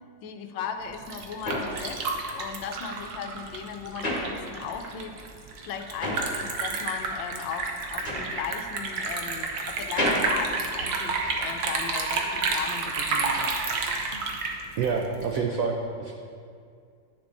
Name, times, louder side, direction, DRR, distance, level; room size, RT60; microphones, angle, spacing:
voice 1, 0.2-2.0 2.3-5.2 5.6-13.5, left 7 dB, 80° left, 7 dB, 1.3 m, -37 dB
sound 1, 0.7-5.0 5.3-11.5, left 1 dB, 25° left, 1.3 m, -33 dB
Liquid, 0.8-15.4, right 4 dB, 65° right, 1.2 m, -30 dB
voice 2, 14.8-16.1, right 5 dB, 85° right, 1 dB, 0.7 m, -27 dB
10.5 x 7.0 x 2.5 m, 2.2 s
omnidirectional pair, 2.1 m